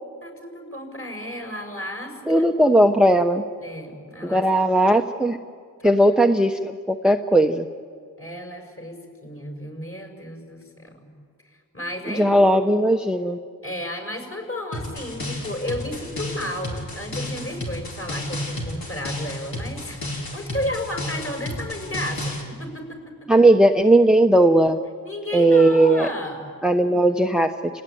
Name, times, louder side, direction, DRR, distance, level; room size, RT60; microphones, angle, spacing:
voice 1, 0.2-2.4 3.6-4.4 5.8-6.0 8.2-11.1 11.7-12.2 13.6-20.0 20.3-23.0 25.0-26.4, left 1 dB, 35° left, 2 dB, 6.7 m, -33 dB
voice 2, 2.3-3.4 4.2-5.4 5.8-7.7 12.1-13.4 23.3-24.8 25.3-26.1 26.6-27.5, right 1 dB, ahead, 6 dB, 0.9 m, -17 dB
sound 1, 14.7-22.4, left 1 dB, 70° left, 4.9 m, -32 dB
29.5 x 18.5 x 9.4 m, 2.1 s
cardioid pair, 65°, 38 cm